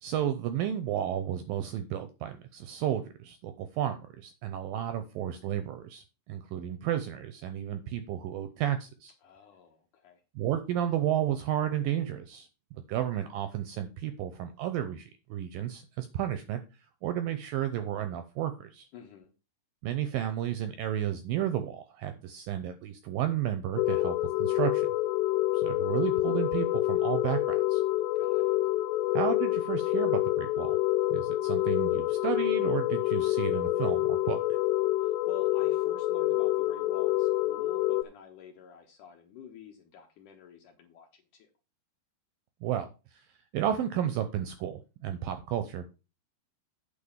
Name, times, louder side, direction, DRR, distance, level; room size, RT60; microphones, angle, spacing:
voice 1, 0.0-9.1 10.4-12.5 12.7-16.6 17.0-18.9 19.8-24.9 25.5-27.8 29.1-30.8 31.1-34.4 42.6-42.9 43.1-43.2 43.5-45.9, right 11 dB, 80° right, 9 dB, 2.1 m, -32 dB
voice 2, 9.2-10.2 18.9-19.3 28.2-28.6 35.0-41.5, left 7 dB, 65° left, 4 dB, 2.1 m, -49 dB
sound 1, 23.8-38.0, left 16 dB, 85° left, 2.7 m, -27 dB
8.8 x 4.6 x 7.1 m, 0.30 s
omnidirectional pair, 4.8 m